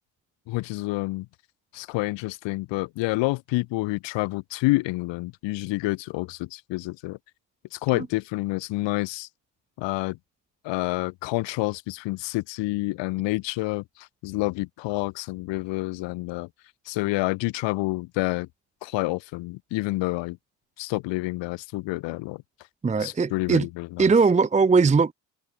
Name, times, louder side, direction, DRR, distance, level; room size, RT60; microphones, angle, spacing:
voice 1, 0.5-1.3 1.7-7.2 7.7-9.3 9.8-10.2 10.6-16.5 16.9-18.5 18.8-20.4 20.8-22.4 23.0-24.1, left 21 dB, 75° left, 0.8 m, -28 dB
voice 2, 22.8-23.7 24.0-25.1, right 4 dB, 15° right, 0.8 m, -19 dB
cardioid pair, 100°, 44 cm